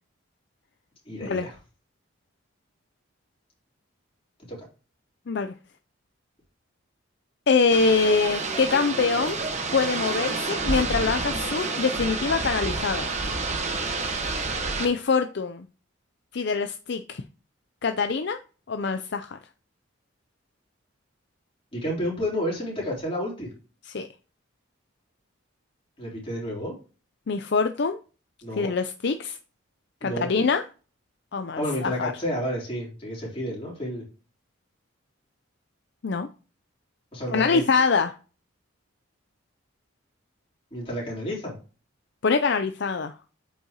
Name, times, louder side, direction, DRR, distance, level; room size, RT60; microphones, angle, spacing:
voice 1, 1.1-1.6 4.5-4.6 21.7-23.5 26.0-26.7 28.4-28.7 30.0-30.5 31.6-34.0 37.1-37.6 40.7-41.5, equal, 25° left, 3.6 m, -30 dB
voice 2, 7.5-9.4 9.7-13.1 14.8-15.6 16.3-17.2 17.8-18.4 18.7-19.4 23.9-24.1 27.3-28.0 28.6-29.4 30.0-30.6 31.3-32.1 36.0-36.3 37.3-38.1 42.2-43.1, left 4 dB, 55° left, 0.5 m, -24 dB
sound 1, 7.7-14.9, right 3 dB, 35° right, 1.2 m, -29 dB
8.5 x 5.5 x 2.9 m
head